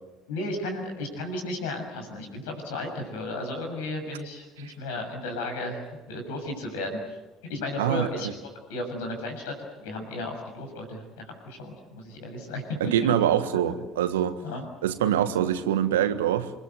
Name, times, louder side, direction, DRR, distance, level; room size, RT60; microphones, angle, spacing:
voice 1, 0.3-7.0 7.4-12.8 13.0-13.5 14.4-14.6, left 2 dB, 75° left, 4 dB, 6.8 m, -34 dB
voice 2, 7.8-8.1 12.8-14.4 14.8-16.5, right 10 dB, 80° right, 10 dB, 1.4 m, -24 dB
28.0 x 21.5 x 8.1 m, 1.1 s
hypercardioid pair, 60°, 0 cm